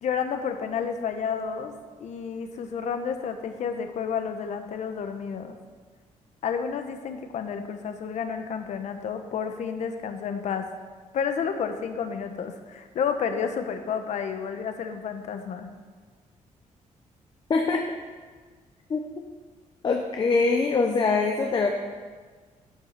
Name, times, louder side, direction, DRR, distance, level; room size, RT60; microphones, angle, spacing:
voice 1, 0.0-1.7 2.0-5.6 6.4-10.7 11.1-15.7, left 6 dB, 65° left, 7 dB, 1.0 m, -30 dB
voice 2, 17.5-17.8 18.9-19.0 19.8-21.8, left 4 dB, 35° left, 3 dB, 0.8 m, -23 dB
11.5 x 5.8 x 5.8 m, 1.5 s
cardioid pair, 155°, 13 cm